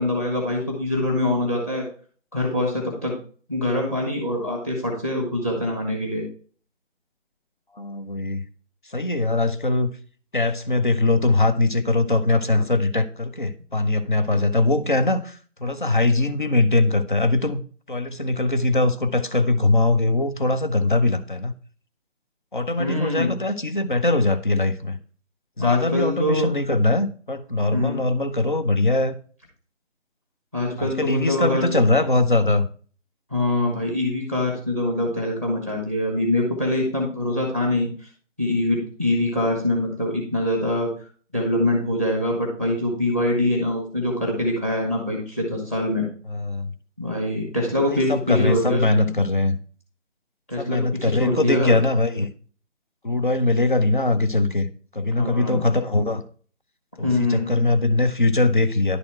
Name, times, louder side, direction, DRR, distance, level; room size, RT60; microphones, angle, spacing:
voice 1, 0.0-1.8 2.3-3.1 3.5-6.2 22.8-23.4 25.6-26.5 27.7-28.0 30.5-31.8 33.3-38.1 38.4-40.9 41.3-46.1 47.0-49.1 50.5-51.8 55.1-55.7 57.0-57.5, left 1 dB, 10° left, 1.2 m, -24 dB
voice 2, 7.7-8.4 8.8-9.9 10.3-17.6 17.9-21.5 22.5-25.0 25.6-29.2 30.8-32.7 46.3-46.8 47.8-49.6 50.6-52.3 53.0-56.2 57.0-59.0, left 2 dB, 40° left, 0.6 m, -21 dB
10.5 x 4.2 x 4.3 m
figure-of-eight pair, 160°, 38 cm